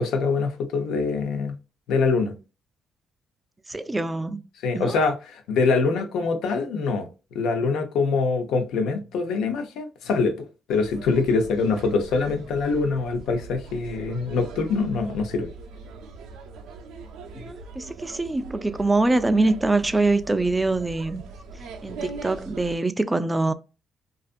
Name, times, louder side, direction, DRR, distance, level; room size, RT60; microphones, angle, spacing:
voice 1, 0.0-1.6 1.9-2.3 4.6-15.5, left 4 dB, 85° left, 0.6 m, -24 dB
voice 2, 3.7-4.4 4.7-5.0 17.3-21.2 21.8-23.5, right 2 dB, 15° right, 0.3 m, -24 dB
sound 1, 10.7-22.8, right 3 dB, 90° right, 0.5 m, -41 dB
2.5 x 2.4 x 2.4 m
cardioid pair, 90°, 0 cm